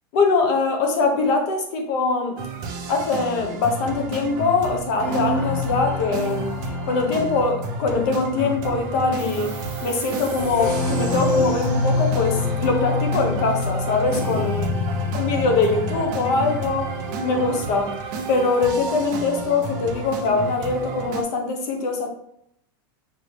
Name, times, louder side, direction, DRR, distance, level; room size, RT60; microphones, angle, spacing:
voice 1, 0.1-2.4 2.9-9.6 9.8-14.7 15.1-17.0 17.2-17.9 18.3-22.1, left 3 dB, 45° left, 4 dB, 1.0 m, -22 dB
sound 1, 2.4-21.2, right 4 dB, 35° right, 0.7 m, -32 dB
sound 2, 4.0-19.8 20.1-20.9, left 3 dB, 15° left, 0.5 m, -28 dB
sound 3, 9.2-16.1, right 3 dB, 10° right, 1.0 m, -43 dB
5.3 x 3.0 x 3.2 m, 0.73 s
supercardioid pair, 170°, 12 cm